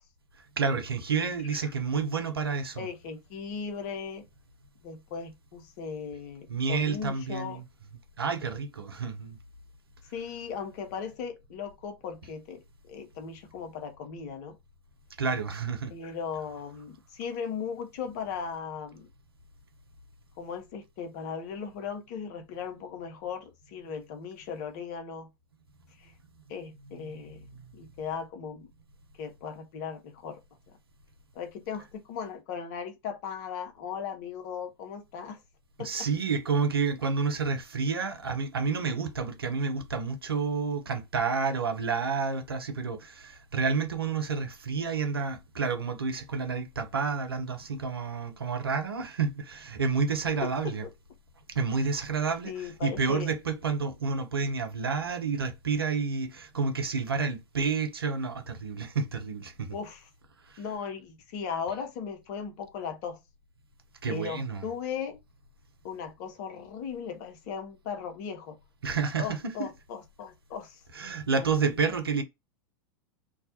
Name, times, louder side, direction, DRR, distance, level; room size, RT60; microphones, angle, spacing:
voice 1, 0.6-2.9 6.5-7.6 8.2-9.4 15.2-15.9 27.5-27.6 35.8-50.8 51.5-59.7 64.0-64.6 68.8-69.7 70.9-72.2, right 5 dB, 80° right, 0.5 m, -30 dB
voice 2, 1.2-1.7 2.8-4.3 4.8-7.6 10.1-14.6 15.9-19.1 20.4-25.3 26.0-26.1 26.5-27.4 27.7-28.7 29.2-30.4 30.7-30.8 31.3-35.4 35.8-36.1 50.4-50.7 51.8-51.9 52.4-53.3 59.7-60.1 60.6-63.2 64.1-65.2 65.8-68.6 69.2-70.8 71.4-71.5, left 6 dB, 45° left, 0.6 m, -37 dB
2.3 x 2.1 x 2.6 m
figure-of-eight pair, 90°, 12 cm